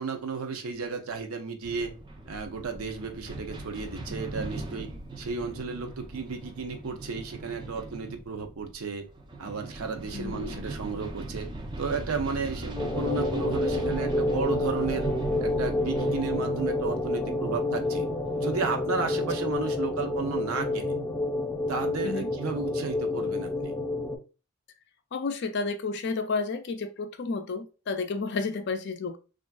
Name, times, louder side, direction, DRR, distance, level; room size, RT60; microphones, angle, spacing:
voice 1, 0.0-1.9 2.3-9.1 9.4-11.5 11.8-15.1 15.4-18.1 18.4-20.9 21.7-23.7, right 4 dB, 90° right, 0.5 m, -33 dB
sound 1, 1.6-19.1, right 1 dB, 20° right, 0.3 m, -40 dB
voice 2, 10.1-10.7 22.0-22.3 25.1-29.2, left 4 dB, 55° left, 0.4 m, -31 dB
sound 2, 12.8-24.2, left 2 dB, 10° left, 0.8 m, -29 dB
3.3 x 2.4 x 2.2 m
head